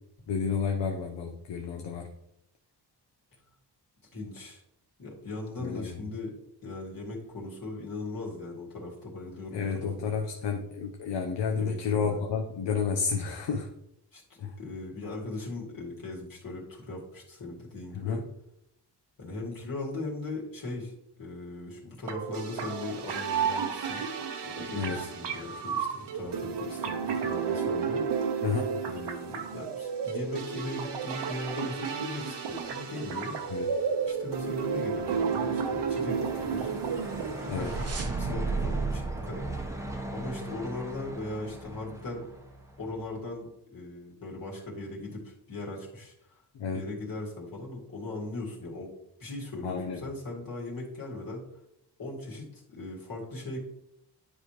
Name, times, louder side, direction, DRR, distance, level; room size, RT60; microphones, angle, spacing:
voice 1, 0.3-2.1 5.6-6.1 9.5-13.7 14.4-14.6 17.9-18.2 24.7-25.0 28.4-28.7 33.5-33.7 37.5-37.7 46.5-46.8 49.6-50.0, left 6 dB, 90° left, 3 dB, 0.8 m, -31 dB
voice 2, 4.1-4.6 5.0-6.3 6.6-9.7 10.0-10.1 11.5-12.2 14.1-18.2 19.2-28.0 28.8-33.4 34.0-36.7 37.3-39.4 40.1-42.2 42.8-46.1 46.7-48.9 49.2-51.4 52.0-53.6, left 2 dB, 55° left, -4 dB, 2.2 m, -39 dB
sound 1, 22.1-38.1, right 6 dB, 75° right, 1.0 m, -32 dB
Truck, 33.8-43.2, right 1 dB, 5° right, 0.8 m, -41 dB
sound 2, 37.0-40.6, right 4 dB, 35° right, 0.8 m, -34 dB
10.0 x 5.0 x 3.0 m, 0.79 s
wide cardioid pair, 110°, 42 cm